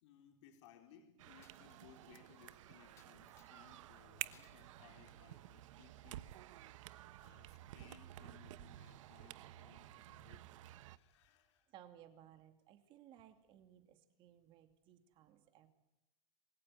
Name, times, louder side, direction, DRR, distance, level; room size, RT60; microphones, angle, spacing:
voice 1, 0.0-6.3 7.2-11.7, left 9 dB, 65° left, 4 dB, 3.9 m, -64 dB
sound 1, 1.2-11.0, right 14 dB, 90° right, 1.1 m, -52 dB
Coin (dropping), 1.4-2.5 3.0-3.8 4.3-4.7 5.1-6.2, left 7 dB, 15° left, 1.6 m, -71 dB
voice 2, 11.7-15.7, right 11 dB, 30° right, 8 dB, 2.4 m, -61 dB
27.0 x 21.0 x 9.7 m, 0.88 s
supercardioid pair, 180°, 16 cm